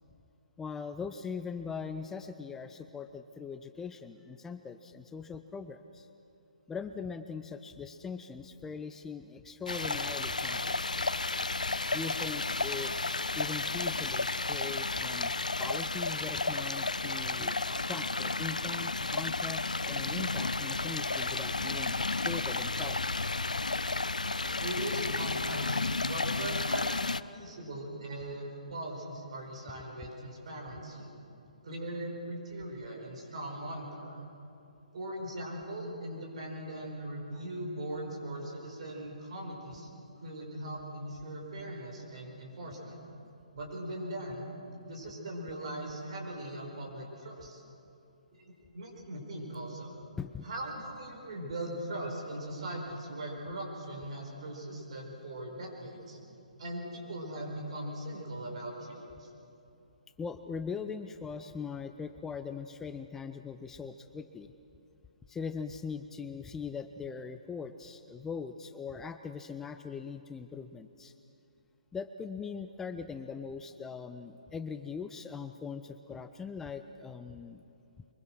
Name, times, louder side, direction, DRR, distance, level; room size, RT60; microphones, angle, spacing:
voice 1, 0.6-6.1 6.7-11.1 11.9-15.3 15.6-23.2 50.2-50.4 60.2-64.5 65.3-71.1 71.9-77.6, left 5 dB, 10° left, 9 dB, 0.5 m, -41 dB
Stream, 9.7-27.2, left 3 dB, 80° left, 0.5 m, -32 dB
voice 2, 24.6-27.0 27.3-31.1 31.6-34.2 34.9-39.9 40.2-43.0 43.5-44.5 44.8-47.6 48.3-49.9 50.4-56.2 56.6-59.3, right 1 dB, 55° right, 0 dB, 5.0 m, -40 dB
23.0 x 21.5 x 6.2 m, 2.7 s
figure-of-eight pair, 130°, 4 cm